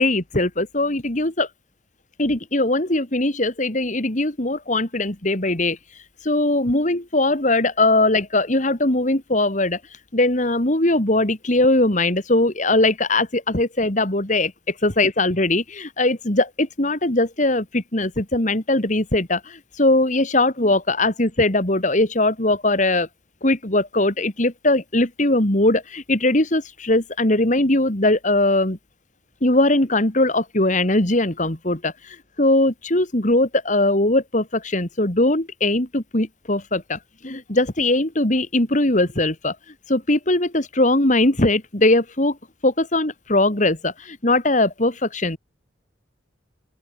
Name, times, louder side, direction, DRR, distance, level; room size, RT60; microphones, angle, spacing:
voice 1, 0.0-1.5 2.2-5.8 6.2-9.8 10.1-14.5 14.8-23.1 23.4-28.8 29.4-39.6 39.9-42.4 42.6-45.4, left 2 dB, 40° left, 2.5 m, -20 dB
open air
head